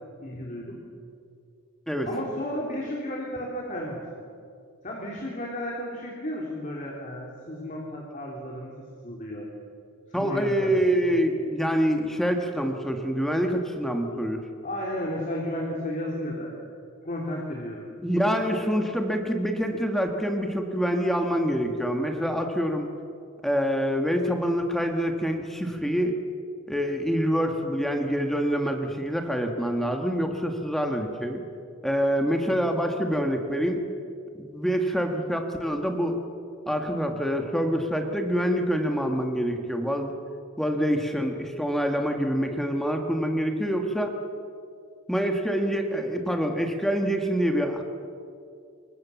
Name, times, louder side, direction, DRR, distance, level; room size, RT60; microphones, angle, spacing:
voice 1, 0.2-0.8 2.0-4.3 4.8-9.5 10.1-10.9 14.6-16.5 17.0-17.8 18.5-18.7, left 1 dB, 35° left, -2 dB, 3.4 m, -33 dB
voice 2, 10.1-14.4 18.0-22.9 23.4-26.2 26.7-31.4 31.8-33.8 34.4-36.2 36.7-40.1 40.6-44.1 45.1-47.8, equal, ahead, 3 dB, 1.7 m, -26 dB
26.5 x 23.5 x 7.2 m, 2.4 s
head